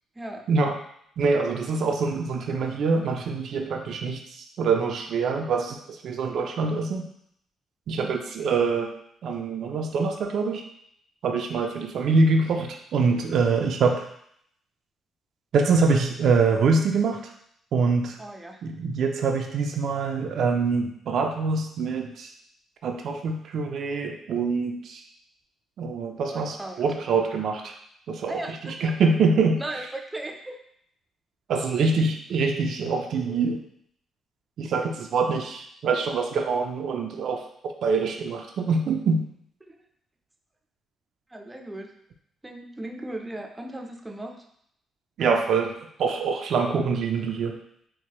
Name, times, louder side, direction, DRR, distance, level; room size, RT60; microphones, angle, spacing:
voice 1, 0.2-0.5 7.9-8.2 18.2-18.6 26.3-26.8 28.3-28.9 29.6-30.6 39.7-39.8 41.3-41.9 42.4-44.4, right 1 dB, 15° right, 2 dB, 0.5 m, -37 dB
voice 2, 1.2-7.1 7.9-8.9 9.2-10.6 11.2-14.0 15.5-17.3 17.7-18.2 18.6-22.3 22.8-25.0 25.8-27.7 28.1-28.3 28.6-29.6 31.5-33.6 34.6-39.2 45.2-45.7 46.0-47.6, right 4 dB, 65° right, 3 dB, 0.4 m, -24 dB
4.5 x 2.1 x 2.9 m, 0.70 s
cardioid pair, 90°, 0 cm